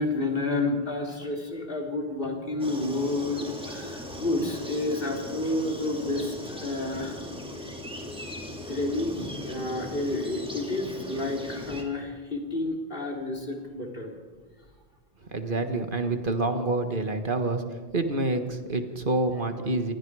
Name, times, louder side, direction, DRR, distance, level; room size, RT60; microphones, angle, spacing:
voice 1, 0.0-7.2 8.7-14.2, left 2 dB, 60° left, 1 dB, 3.6 m, -30 dB
sound 1, 2.6-11.8, left 1 dB, 5° right, 3.1 m, -38 dB
voice 2, 15.3-17.6 17.9-19.9, right 2 dB, 55° right, 7 dB, 1.7 m, -27 dB
28.0 x 20.5 x 4.9 m, 1.4 s
omnidirectional pair, 1.1 m